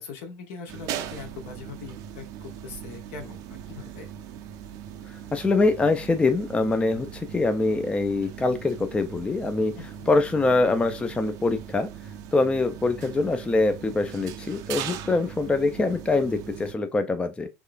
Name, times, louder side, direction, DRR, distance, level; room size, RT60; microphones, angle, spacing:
voice 1, 0.0-4.1 9.7-10.1, left 5 dB, 60° left, 1.0 m, -41 dB
sound 1, 0.7-16.7, right 9 dB, 50° right, 0.5 m, -39 dB
voice 2, 5.1-9.8 10.1-11.9 12.3-17.5, left 3 dB, 15° left, 0.4 m, -24 dB
3.6 x 3.2 x 2.4 m
figure-of-eight pair, 70°, 8 cm